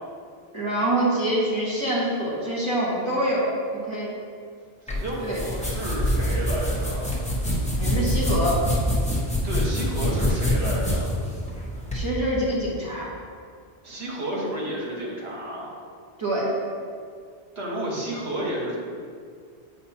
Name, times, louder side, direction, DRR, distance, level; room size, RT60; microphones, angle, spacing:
voice 1, 0.5-4.1 5.2-5.4 7.8-8.6 11.9-13.1 16.2-16.5, right 1 dB, 25° right, -7 dB, 1.6 m, -25 dB
sound 1, 4.9-12.0, equal, 5° left, 0.8 m, -25 dB
voice 2, 4.9-7.2 9.4-11.1 13.8-15.7 17.5-18.8, right 1 dB, 80° right, -4 dB, 1.6 m, -31 dB
8.1 x 5.3 x 2.8 m, 2.2 s
omnidirectional pair, 1.1 m